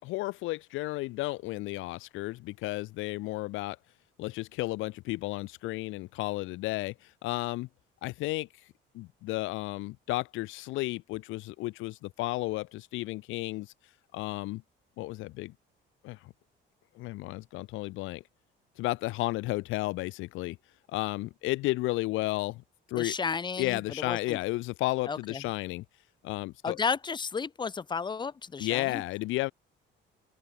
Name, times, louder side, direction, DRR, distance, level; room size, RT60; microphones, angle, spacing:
voice 1, 0.0-3.8 4.2-7.7 8.0-8.5 8.9-13.7 14.1-14.6 15.0-15.5 16.0-16.3 17.0-18.2 18.8-20.6 20.9-22.6 22.9-23.1 23.6-25.8 26.2-26.8 28.6-29.5, left 20 dB, 80° left, 0.4 m, -33 dB
voice 2, 22.9-24.4 25.1-25.4 26.6-29.0, left 5 dB, 25° left, 1.2 m, -33 dB
open air
cardioid pair, 145°, 20 cm